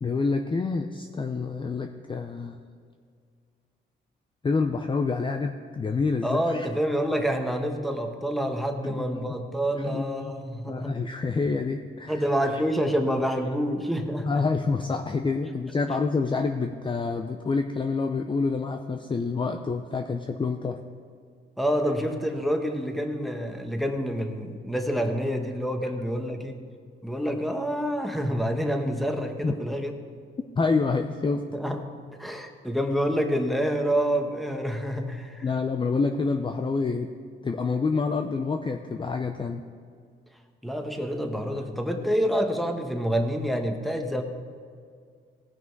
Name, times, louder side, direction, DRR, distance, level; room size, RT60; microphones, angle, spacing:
voice 1, 0.0-2.6 4.4-6.7 8.8-9.3 9.8-10.4 10.7-12.2 12.5-12.6 14.3-20.8 29.4-29.5 30.6-31.4 35.4-37.1 37.4-39.6, left 4 dB, 25° left, 5 dB, 0.6 m, -27 dB
voice 2, 6.2-11.0 12.1-14.3 21.6-26.6 27.0-29.9 31.5-31.8 32.2-35.4 40.6-44.2, equal, ahead, 4 dB, 1.3 m, -27 dB
17.5 x 6.0 x 4.7 m, 2.1 s
cardioid pair, 90°, 20 cm